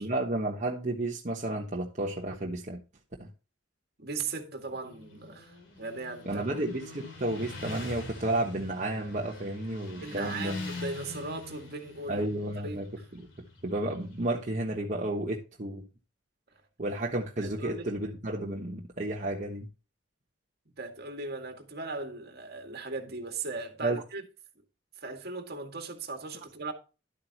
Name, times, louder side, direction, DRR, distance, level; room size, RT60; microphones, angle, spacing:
voice 1, 0.0-2.8 3.2-3.3 6.2-10.5 12.1-12.9 13.2-13.3 13.6-15.8 16.8-19.7 23.8-24.0, right 1 dB, 40° right, 1.2 m, -32 dB
voice 2, 4.0-6.4 10.0-12.3 12.6-13.1 17.4-17.9 20.8-24.2 25.0-26.7, right 3 dB, 60° right, 2.0 m, -38 dB
Motorcycle, 4.7-14.5, left 2 dB, 85° left, 3.4 m, -44 dB
11.5 x 8.5 x 2.9 m
head